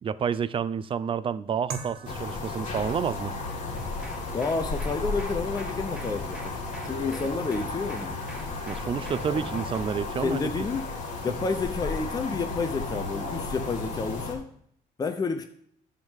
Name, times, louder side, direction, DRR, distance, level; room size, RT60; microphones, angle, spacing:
voice 1, 0.0-3.3 8.7-10.7, right 7 dB, 30° right, 17 dB, 0.4 m, -29 dB
sound 1, 1.7-10.5, right 6 dB, 70° right, 1.4 m, -48 dB
sound 2, 2.0-14.3, left 3 dB, 45° left, 2.4 m, -34 dB
sound 3, 3.7-9.9, right 1 dB, 5° right, 1.5 m, -44 dB
voice 2, 4.3-6.6 6.8-8.2 10.2-10.8 11.2-14.5 15.0-15.4, left 4 dB, 25° left, 7 dB, 0.7 m, -30 dB
11.0 x 3.7 x 7.3 m, 0.65 s
cardioid pair, 110°, 17 cm